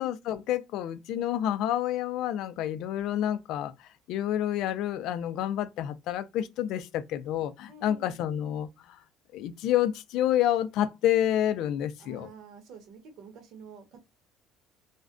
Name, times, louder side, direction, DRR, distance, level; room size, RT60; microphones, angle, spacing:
voice 1, 0.0-3.7 4.1-8.7 9.3-12.3, left 11 dB, 65° left, 0.4 m, -28 dB
voice 2, 7.7-8.1 12.0-14.0, right 5 dB, 60° right, 0.9 m, -48 dB
2.4 x 2.1 x 2.4 m
cardioid pair, 145°, 0 cm